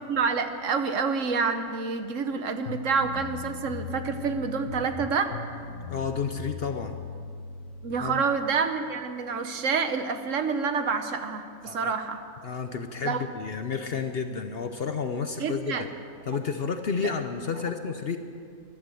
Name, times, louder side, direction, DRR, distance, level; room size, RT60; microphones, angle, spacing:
voice 1, 0.1-5.6 7.8-12.2 13.0-13.2 15.4-15.8 17.0-17.1, right 5 dB, 60° right, 8 dB, 1.2 m, -28 dB
sound 1, 2.6-8.0, left 5 dB, 90° left, 1.9 m, -39 dB
voice 2, 5.9-7.0 8.0-8.2 11.6-11.9 12.4-15.9 16.2-18.2, left 5 dB, 50° left, 7 dB, 0.8 m, -31 dB
14.5 x 12.0 x 7.7 m, 2.3 s
omnidirectional pair, 1.5 m